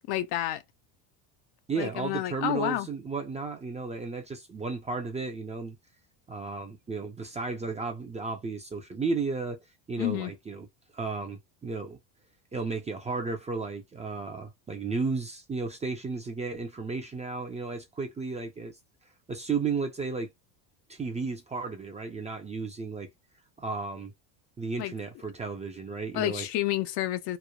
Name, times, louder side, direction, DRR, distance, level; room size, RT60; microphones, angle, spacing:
voice 1, 0.1-0.6 1.8-2.9 10.0-10.3 24.8-24.9 26.1-27.4, left 14 dB, 55° left, 0.5 m, -29 dB
voice 2, 1.7-5.8 6.3-10.7 10.9-12.0 12.5-18.8 19.3-20.3 20.9-23.1 23.6-24.1 24.6-26.5, right 4 dB, 15° right, 0.4 m, -33 dB
3.1 x 2.1 x 2.2 m
supercardioid pair, 105°, 50 cm